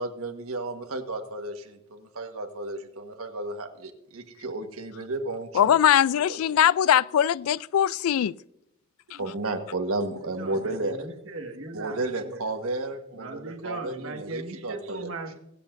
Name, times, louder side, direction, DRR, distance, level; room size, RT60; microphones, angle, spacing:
voice 1, 0.0-5.8 6.2-6.3 9.1-11.1 11.7-15.1, right 2 dB, 80° right, 1.5 m, -33 dB
voice 2, 5.5-8.3 9.1-9.2, left 10 dB, 80° left, 0.3 m, -21 dB
voice 3, 10.4-12.5 13.1-15.4, right 2 dB, 65° right, 1.7 m, -38 dB
24.0 x 7.9 x 2.6 m
head